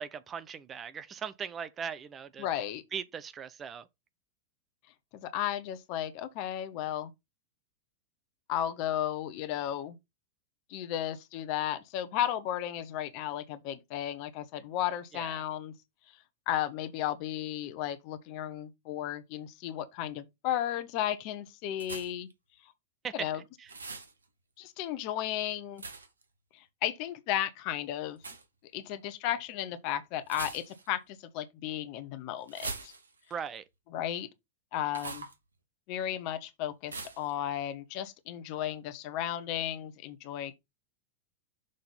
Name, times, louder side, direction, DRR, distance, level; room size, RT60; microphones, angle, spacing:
voice 1, 0.0-2.5 2.9-3.8 15.1-15.4 23.0-23.7 33.3-33.6, right 7 dB, 25° right, 0.6 m, -39 dB
voice 2, 2.4-2.8 5.1-7.1 8.5-10.0 10.7-15.7 16.5-22.3 23.1-23.4 24.6-25.8 26.5-28.2 28.7-32.9 33.9-34.3 34.7-35.3 35.9-40.5, left 11 dB, 45° left, 1.0 m, -34 dB
sound 1, 21.8-22.3 23.7-24.1 25.8-26.2 28.2-28.4 30.2-31.0 32.5-33.3 34.9-35.4 36.9-37.3, right 3 dB, 75° right, 1.2 m, -41 dB
6.5 x 3.8 x 5.5 m
figure-of-eight pair, 90°, 0 cm